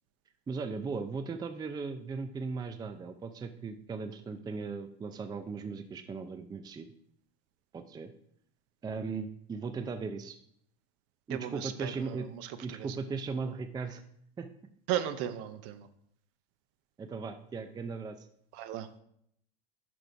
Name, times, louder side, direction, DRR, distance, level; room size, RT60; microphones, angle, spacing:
voice 1, 0.5-6.9 7.7-8.1 8.8-10.4 11.3-12.3 12.6-14.0 14.4-14.5 17.0-18.3, right 4 dB, 15° right, 9 dB, 0.5 m, -37 dB
voice 2, 11.3-13.0 14.9-15.9 18.5-18.9, right 11 dB, 50° right, 11 dB, 0.8 m, -36 dB
6.2 x 5.2 x 4.6 m, 0.69 s
hypercardioid pair, 105°, 30 cm